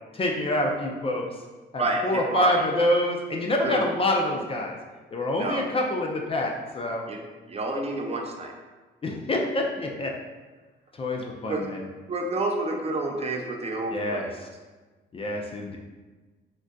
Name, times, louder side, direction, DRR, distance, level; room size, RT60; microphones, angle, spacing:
voice 1, 0.1-1.2 1.7-4.8 5.1-7.0 9.0-10.1 11.0-11.8 13.9-14.3 15.1-15.8, left 1 dB, 30° left, 0 dB, 0.4 m, -26 dB
voice 2, 1.8-2.6 3.6-3.8 5.4-5.6 7.1-7.2 7.5-8.5 11.5-11.7 12.1-14.3, right 2 dB, 30° right, 1 dB, 0.4 m, -29 dB
3.7 x 2.4 x 2.2 m, 1.3 s
cardioid pair, 90°, 20 cm